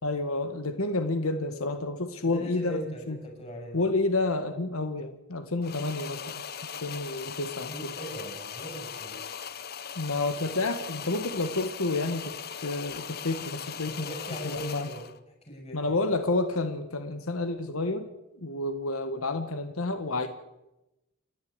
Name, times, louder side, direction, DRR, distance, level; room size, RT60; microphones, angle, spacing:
voice 1, 0.0-3.2 3.7-6.2 6.8-7.9 10.0-14.1 14.4-14.9 15.7-18.1 18.4-20.3, left 2 dB, 85° left, 8 dB, 1.5 m, -30 dB
voice 2, 2.2-3.8 7.3-7.4 7.7-9.4 13.8-15.0 15.5-16.0, right 1 dB, 30° left, 2 dB, 6.8 m, -40 dB
sound 1, 5.6-15.2, left 7 dB, 45° left, 0.9 m, -39 dB
29.5 x 10.5 x 9.6 m, 0.97 s
head